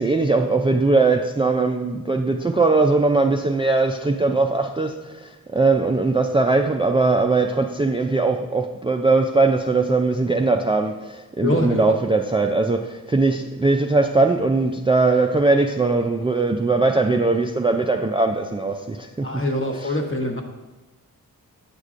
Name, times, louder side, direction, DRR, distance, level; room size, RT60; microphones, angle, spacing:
voice 1, 0.0-19.5 19.8-20.0, right 3 dB, 15° right, 0.3 m, -20 dB
voice 2, 11.4-11.9 19.2-20.4, left 1 dB, 35° left, 1.0 m, -24 dB
8.2 x 6.5 x 2.5 m
cardioid pair, 55°, 36 cm